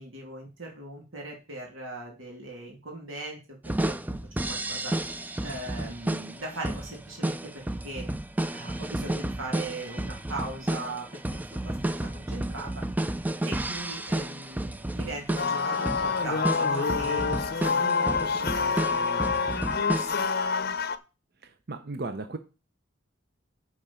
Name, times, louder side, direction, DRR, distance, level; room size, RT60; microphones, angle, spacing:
voice 1, 0.0-3.4 3.6-4.2 4.5-8.0 8.5-12.8 13.5-19.6, right 2 dB, 85° right, 0 dB, 2.9 m, -39 dB
sound 1, 3.6-20.3, right 1 dB, 10° right, 0.4 m, -32 dB
sound 2, 15.4-21.0, left 5 dB, 50° left, 0.7 m, -27 dB
voice 2, 21.4-22.4, right 3 dB, 50° right, 8 dB, 0.8 m, -36 dB
10.5 x 5.0 x 5.7 m, 0.32 s
head